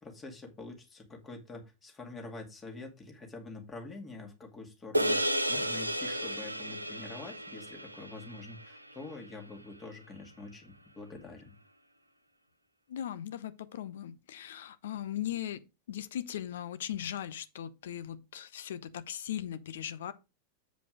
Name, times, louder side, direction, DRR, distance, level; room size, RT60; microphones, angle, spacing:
voice 1, 0.0-11.5, left 3 dB, 20° left, 2.3 m, -46 dB
sound 1, 4.9-9.5, right 1 dB, 85° right, 0.6 m, -33 dB
voice 2, 12.9-15.6 15.9-20.1, left 11 dB, 60° left, 0.8 m, -38 dB
7.9 x 5.0 x 5.0 m
figure-of-eight pair, 90°, 0 cm